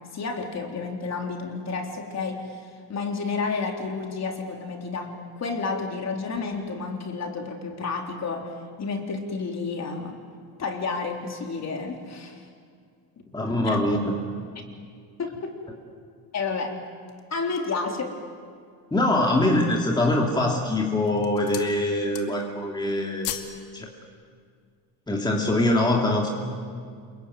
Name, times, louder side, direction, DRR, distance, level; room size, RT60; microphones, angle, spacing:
voice 1, 0.1-2.6 2.9-8.5 8.8-10.2 10.6-12.4 13.6-13.8 15.2-15.6 16.3-16.8 17.3-18.1, left 4 dB, 35° left, 2 dB, 3.8 m, -30 dB
voice 2, 13.3-14.2 18.9-23.4 23.7-23.9 25.1-26.3, left 1 dB, 10° left, -1 dB, 2.8 m, -23 dB
sound 1, 16.9-17.9 18.5-18.6 19.0-19.6 20.3-20.6 21.0-21.8 22.0-22.6 22.8-23.6 23.9-24.1, left 12 dB, 90° left, 2.5 m, -37 dB
27.0 x 23.5 x 9.5 m, 2.1 s
cardioid pair, 125°, 47 cm